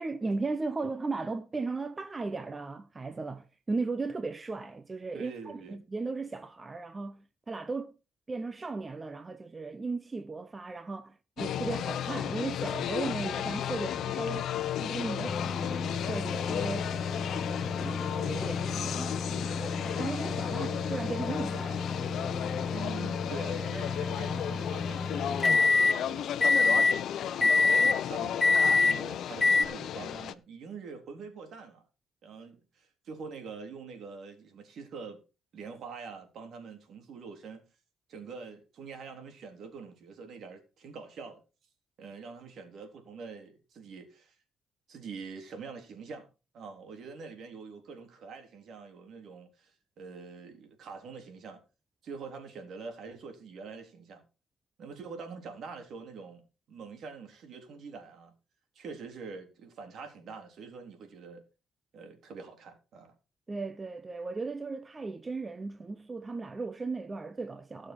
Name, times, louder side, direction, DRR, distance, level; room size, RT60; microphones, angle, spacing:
voice 1, 0.0-7.9 8.3-14.5 14.8-17.0 17.3-22.2 63.5-67.9, right 3 dB, 25° right, 0.9 m, -36 dB
voice 2, 5.1-5.8 22.7-31.8 32.2-35.2 35.5-37.6 38.1-41.4 42.0-44.4 44.9-46.3 46.5-49.7 50.0-51.6 52.0-54.2 54.8-56.4 56.7-58.3 58.8-61.4 61.9-63.1, right 5 dB, 65° right, 3.7 m, -45 dB
sound 1, 11.4-30.3, left 10 dB, 70° left, 0.8 m, -34 dB
sound 2, 15.3-26.0 26.4-27.0 27.4-28.0 28.4-29.0 29.4-29.6, left 3 dB, 20° left, 1.0 m, -28 dB
17.0 x 6.6 x 4.7 m
cardioid pair, 90°, 0 cm